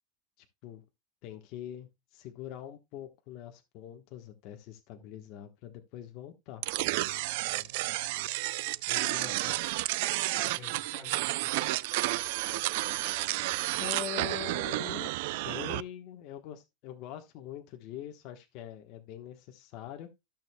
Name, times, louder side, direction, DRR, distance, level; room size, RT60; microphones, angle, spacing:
voice 1, 0.4-0.8 1.2-6.6 13.8-20.1, left 11 dB, 50° left, 1.1 m, -43 dB
sound 1, 6.6-15.8, right 19 dB, 65° right, 0.4 m, -31 dB
voice 2, 7.3-8.0 8.9-9.7 10.4-11.7, left 3 dB, 20° left, 3.9 m, -49 dB
13.5 x 6.4 x 2.2 m
supercardioid pair, 155°, 0 cm